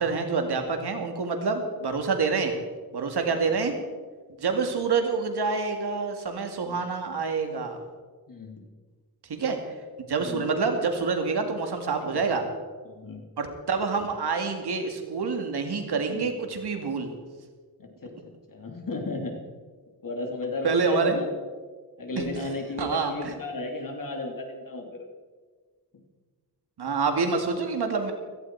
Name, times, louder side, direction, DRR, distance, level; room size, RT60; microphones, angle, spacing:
voice 1, 0.0-2.5 2.9-3.8 4.4-7.8 9.3-9.7 10.1-12.4 13.4-17.1 20.6-21.2 22.1-22.2 22.8-23.1 26.8-28.1, right 4 dB, 90° right, 5 dB, 2.2 m, -27 dB
voice 2, 8.3-8.6 10.2-10.5 12.0-12.3 12.8-13.2 16.1-16.3 17.8-18.1 18.5-19.3 20.0-21.3 22.0-25.0, left 2 dB, 55° left, 2 dB, 3.0 m, -34 dB
16.5 x 15.5 x 4.7 m, 1.4 s
wide cardioid pair, 80°, 39 cm